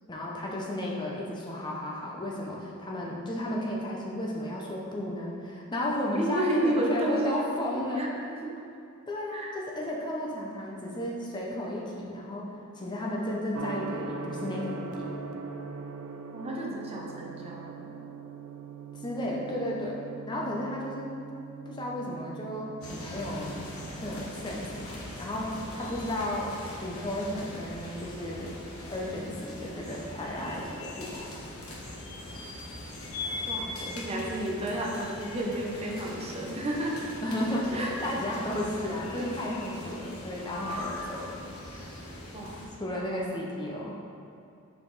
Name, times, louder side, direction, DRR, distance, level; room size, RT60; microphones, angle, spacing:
voice 1, 0.1-8.1 9.1-15.1 18.9-20.0 20.3-21.1 21.7-23.6 24.0-28.5 28.9-31.3 33.8-34.0 37.2-41.4 42.8-44.0, left 1 dB, 20° left, -3 dB, 0.6 m, -33 dB
voice 2, 6.2-8.5 9.3-9.5 16.3-17.9 33.5-37.0 37.7-37.9 39.2-39.3 40.7-40.8 41.8-41.9 42.3-43.4, right 1 dB, 25° right, -2 dB, 0.7 m, -32 dB
Gong, 13.5-24.4, right 4 dB, 70° right, 0.4 m, -41 dB
sound 1, 22.8-42.7, left 2 dB, 80° left, 1.1 m, -41 dB
5.7 x 4.7 x 4.0 m, 2.6 s
head